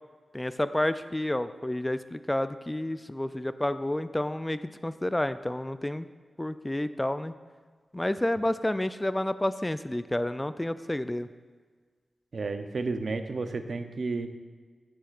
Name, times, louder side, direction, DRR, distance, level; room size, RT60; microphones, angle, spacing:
voice 1, 0.3-6.1 6.4-7.3 7.9-11.3, left 1 dB, 15° left, 12 dB, 0.3 m, -30 dB
voice 2, 12.3-14.3, right 3 dB, 65° right, 8 dB, 0.6 m, -32 dB
11.0 x 10.0 x 2.5 m, 1.5 s
wide cardioid pair, 70°, 0 cm